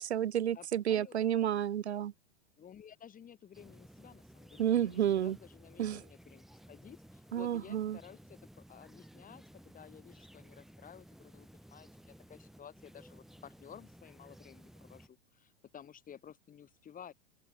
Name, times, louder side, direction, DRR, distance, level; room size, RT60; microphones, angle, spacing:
voice 1, 0.0-2.1 4.6-5.4 5.8-6.0 7.3-8.0, right 10 dB, 80° right, 0.6 m, -31 dB
voice 2, 0.5-1.4 2.6-17.1, left 8 dB, 25° left, 6.3 m, -54 dB
sound 1, 3.5-15.1, equal, ahead, 1.9 m, -56 dB
open air
figure-of-eight pair, 90°, 33 cm